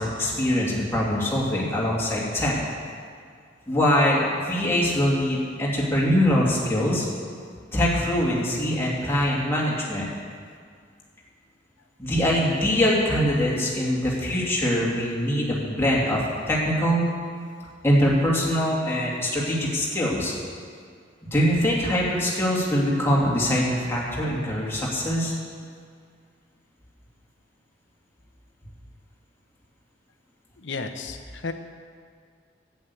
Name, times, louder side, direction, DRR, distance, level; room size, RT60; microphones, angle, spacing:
voice 1, 0.0-2.6 3.7-7.1 7.7-10.1 12.0-17.0 17.8-20.3 21.3-25.3, equal, 15° left, -5 dB, 2.6 m, -23 dB
voice 2, 30.6-31.5, left 4 dB, 75° left, 7 dB, 1.0 m, -33 dB
11.0 x 8.8 x 8.3 m, 2.1 s
head